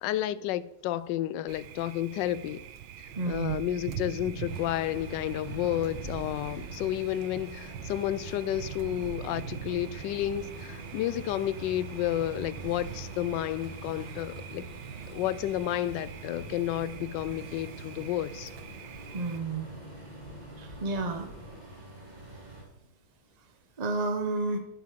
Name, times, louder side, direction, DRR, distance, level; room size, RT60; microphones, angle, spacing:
voice 1, 0.0-2.6 3.3-14.7 15.1-18.5, left 13 dB, 75° left, 1.1 m, -31 dB
Thunder, 1.5-19.4, right 10 dB, 90° right, 1.6 m, -43 dB
sound 1, 3.1-21.6, equal, 20° left, 3.6 m, -52 dB
voice 2, 3.2-3.6 19.1-19.7 20.6-21.3 23.8-24.6, right 3 dB, 35° right, 0.6 m, -30 dB
sound 2, 4.4-22.6, right 2 dB, 20° right, 3.1 m, -46 dB
9.7 x 7.8 x 6.7 m
omnidirectional pair, 2.2 m